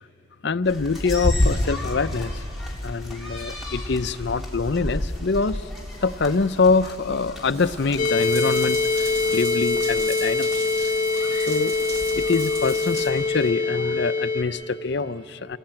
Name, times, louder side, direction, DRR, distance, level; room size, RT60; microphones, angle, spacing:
voice 1, 0.4-2.4 2.8-5.6 6.0-10.5 11.5-11.7 12.2-15.6, left 4 dB, 55° left, 12 dB, 0.5 m, -24 dB
sound 1, 0.6-13.5, left 1 dB, ahead, 3.2 m, -32 dB
Water tap faucet / Bathtub (filling or washing) / Drip, 3.9-13.1, right 2 dB, 80° right, 2.9 m, -38 dB
sound 2, 8.0-14.4, left 3 dB, 40° left, 1.5 m, -24 dB
28.5 x 20.0 x 8.8 m, 2.7 s
head